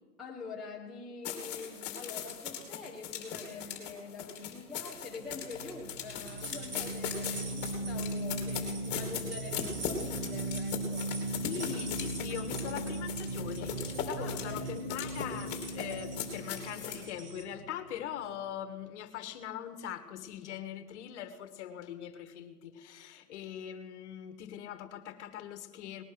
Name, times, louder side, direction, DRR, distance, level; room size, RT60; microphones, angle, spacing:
voice 1, 0.2-11.1 14.2-14.6 15.3-15.4, left 4 dB, ahead, 0.7 m, -45 dB
sound 1, 1.2-17.0, left 8 dB, 20° left, 2.9 m, -39 dB
sound 2, 5.0-18.3, right 1 dB, 30° right, 2.4 m, -39 dB
sound 3, 6.3-17.4, right 4 dB, 90° right, 3.4 m, -47 dB
voice 2, 11.4-26.0, left 10 dB, 50° left, 1.6 m, -41 dB
19.5 x 11.0 x 6.3 m
hypercardioid pair, 155°, 46 cm